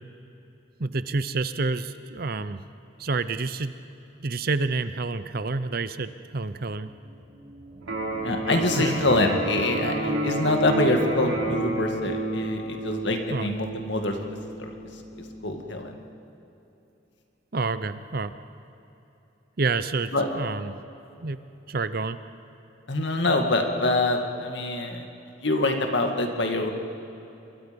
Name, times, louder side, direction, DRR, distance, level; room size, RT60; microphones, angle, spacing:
voice 1, 0.8-2.6 3.0-3.8 4.2-6.9 8.7-8.9 13.3-13.5 17.5-18.3 19.6-20.8 21.2-21.4 21.7-22.2, right 3 dB, 45° right, 12 dB, 0.7 m, -28 dB
sound 1, 6.6-6.7 6.9-12.0, equal, 30° right, 3.4 m, -35 dB
Electric guitar, 7.8-15.8, right 2 dB, 85° right, 4.7 m, -31 dB
voice 2, 8.2-14.7 15.2-16.0 20.1-20.3 22.9-25.1 25.4-26.7, left 2 dB, 60° left, 4 dB, 2.1 m, -25 dB
28.0 x 22.5 x 5.3 m, 2.9 s
head